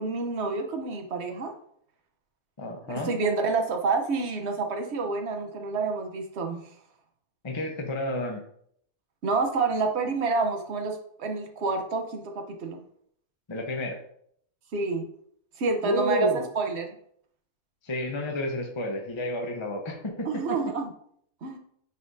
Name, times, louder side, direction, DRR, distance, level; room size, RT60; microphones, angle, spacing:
voice 1, 0.0-1.5 2.9-6.6 9.2-12.8 14.7-15.1 15.6-17.0 20.2-20.9 21.4-21.6, right 4 dB, 50° right, 4 dB, 1.2 m, -28 dB
voice 2, 2.6-3.1 7.4-8.4 13.5-14.0 15.8-16.4 17.8-20.4, left 1 dB, 25° left, 1 dB, 0.9 m, -30 dB
9.5 x 5.5 x 2.7 m, 0.67 s
omnidirectional pair, 1.5 m